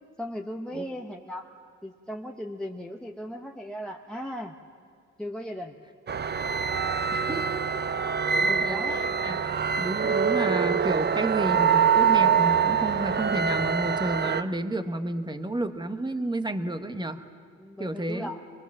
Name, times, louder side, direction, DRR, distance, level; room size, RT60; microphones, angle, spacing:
voice 1, 0.2-1.5 1.8-4.5 5.2-5.7 8.4-9.0 10.3-10.4 12.6-12.7 17.6-18.4, equal, 5° left, 0 dB, 1.0 m, -37 dB
sound 1, 6.1-14.4, right 7 dB, 35° right, 0.7 m, -24 dB
voice 2, 7.1-7.8 8.6-9.4 9.8-17.2 17.8-18.3, right 1 dB, 15° right, 8 dB, 1.3 m, -31 dB
22.0 x 21.5 x 7.3 m, 2.2 s
cardioid pair, 90°, 30 cm